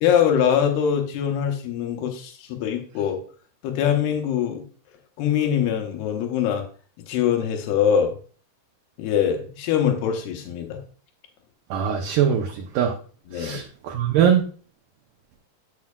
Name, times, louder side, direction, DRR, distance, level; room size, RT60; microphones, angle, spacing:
voice 1, 0.0-3.2 3.6-4.6 5.2-6.7 7.1-8.1 9.0-10.8 13.3-13.6, left 8 dB, 90° left, 4 dB, 3.1 m, -23 dB
voice 2, 11.7-12.9 13.3-14.4, right 9 dB, 75° right, 2 dB, 2.0 m, -22 dB
8.4 x 7.6 x 2.3 m, 0.41 s
omnidirectional pair, 4.5 m